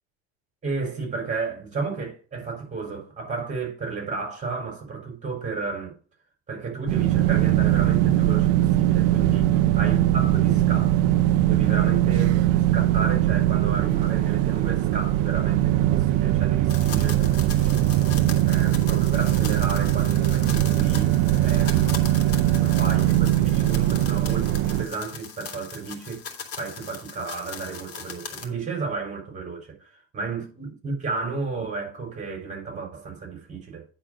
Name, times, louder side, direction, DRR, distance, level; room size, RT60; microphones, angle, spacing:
voice 1, 0.6-6.0 6.5-11.1 11.4-12.3 12.7-18.1 18.4-21.1 21.4-26.2 26.5-33.9, right 4 dB, 25° right, 4.8 m, -33 dB
sound 1, 6.9-24.9, right 14 dB, 50° right, 0.6 m, -21 dB
sound 2, 16.7-28.5, left 7 dB, 45° left, 2.4 m, -39 dB
9.8 x 4.0 x 6.3 m
supercardioid pair, 110°, 32 cm